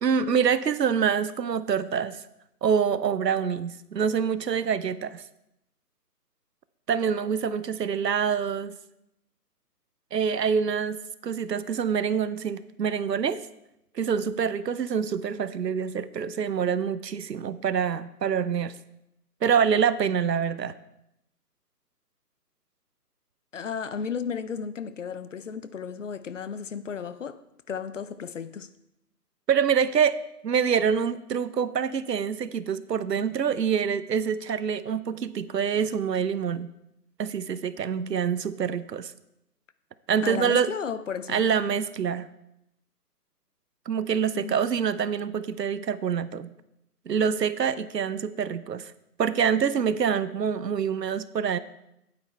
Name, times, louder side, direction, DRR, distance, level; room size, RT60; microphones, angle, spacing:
voice 1, 0.0-2.2 2.6-5.2 6.9-8.7 10.1-13.4 13.9-18.8 19.4-20.7 29.5-30.2 30.4-36.7 37.2-39.1 40.1-40.7 41.3-42.3 43.9-46.5 47.1-48.9 49.2-51.6, right 7 dB, 90° right, 0.8 m, -26 dB
voice 2, 23.5-27.4 27.7-28.7 40.2-41.4 44.3-44.6, left 6 dB, 50° left, 0.6 m, -34 dB
8.9 x 8.6 x 4.4 m
hypercardioid pair, 155°, 48 cm